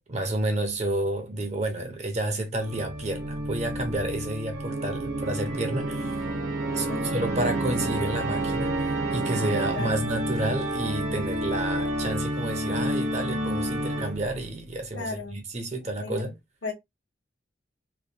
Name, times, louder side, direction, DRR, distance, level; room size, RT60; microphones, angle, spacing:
voice 1, 0.0-6.3 6.7-16.4, right 1 dB, 35° right, 0.8 m, -30 dB
Organ, 2.6-14.4, right 1 dB, 90° right, 0.9 m, -29 dB
voice 2, 6.7-7.0 9.7-10.0 14.9-15.4 16.0-16.2 16.6-16.7, left 3 dB, 80° left, 1.1 m, -34 dB
3.2 x 2.3 x 2.6 m
head